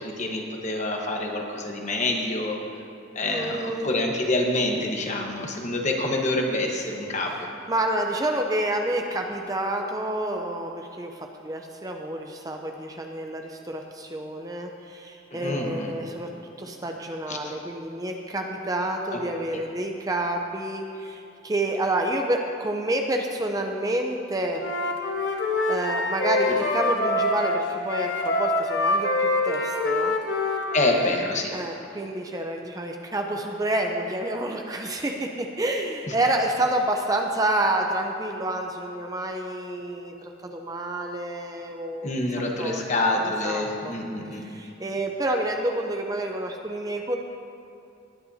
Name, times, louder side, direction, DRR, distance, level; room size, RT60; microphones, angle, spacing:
voice 1, 0.0-2.6 3.1-7.3 15.3-15.9 17.3-17.5 19.1-19.2 26.5-26.6 30.7-31.5 36.1-36.2 42.0-44.4, left 2 dB, 40° left, 1 dB, 1.2 m, -27 dB
voice 2, 3.2-3.9 7.7-16.3 16.6-24.6 25.7-30.2 31.5-42.1 42.6-42.8 43.2-44.0 44.3-47.2, right 1 dB, 20° right, 3 dB, 0.6 m, -29 dB
Wind instrument woodwind instrument, 24.5-31.2, left 2 dB, 65° left, 1.2 m, -25 dB
19.0 x 9.9 x 2.8 m, 2.7 s
head